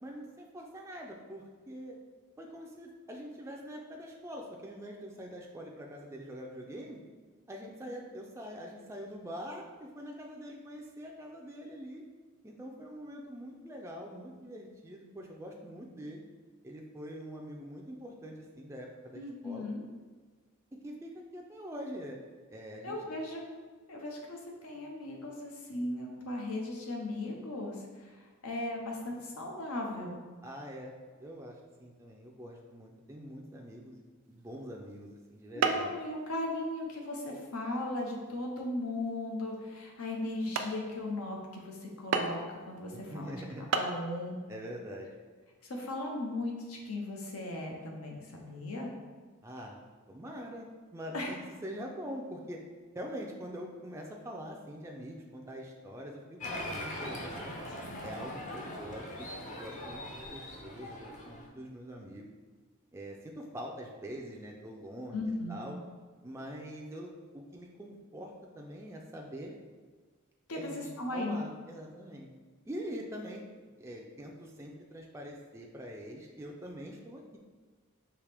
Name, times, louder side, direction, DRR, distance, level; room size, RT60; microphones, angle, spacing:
voice 1, 0.0-2.0 2.4-7.0 7.5-12.0 12.4-16.2 16.6-19.7 20.8-22.2 22.5-23.0 30.4-30.9 31.2-35.9 43.1-43.6 44.5-45.1 49.4-49.8 50.1-52.6 52.9-57.6 58.0-62.2 62.9-65.2 65.5-65.8 66.2-69.5 70.5-72.3 72.7-73.5 73.8-77.4, equal, 15° right, -1 dB, 0.3 m, -44 dB
voice 2, 19.1-19.8 22.8-23.4 23.9-30.2 35.5-44.4 45.6-48.9 51.1-51.3 65.1-65.7 70.5-71.4, left 2 dB, 80° left, 0 dB, 0.8 m, -37 dB
sound 1, 34.4-34.7 35.6-36.0 36.4-36.8 37.4-37.5 38.1-38.3 38.9-39.0 39.6-39.7 40.2-40.3 40.6-40.8 42.1-42.5 43.4-43.5 43.7-44.0, right 5 dB, 80° right, 0.4 m, -31 dB
Applause, 56.4-61.5, left 1 dB, 35° left, 0.7 m, -41 dB
4.8 x 2.9 x 3.4 m, 1.5 s
head